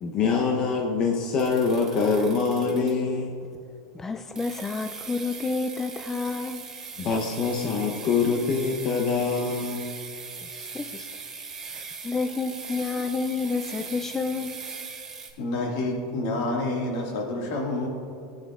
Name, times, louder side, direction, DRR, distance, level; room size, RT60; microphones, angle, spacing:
voice 1, 0.0-3.3 7.0-9.8, left 4 dB, 45° left, 1 dB, 0.8 m, -24 dB
sound 1, 1.4-3.2 4.4-15.3, right 5 dB, 20° right, 1.4 m, -40 dB
voice 2, 3.9-6.6 10.4-11.1 11.7-14.6, left 4 dB, 15° left, 7 dB, 0.3 m, -30 dB
voice 3, 15.4-17.9, left 2 dB, 65° left, 1 dB, 1.9 m, -28 dB
14.5 x 8.9 x 2.4 m, 2.6 s
supercardioid pair, 120°, 2 cm